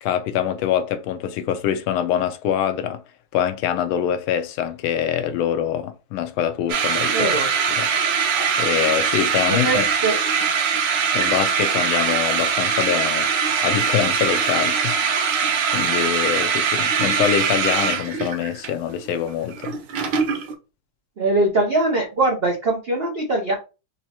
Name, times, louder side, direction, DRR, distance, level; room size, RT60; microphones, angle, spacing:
voice 1, 0.0-3.0 3.3-7.4 7.7-7.9 8.6-9.9 11.1-13.3 13.6-15.4 15.7-19.7, left 9 dB, 80° left, 1.4 m, -24 dB
sound 1, 6.7-20.5, right 6 dB, 65° right, 1.4 m, -22 dB
voice 2, 7.1-7.5 9.5-10.2 21.2-23.5, right 2 dB, 90° right, 0.5 m, -22 dB
4.6 x 3.0 x 2.9 m
omnidirectional pair, 2.3 m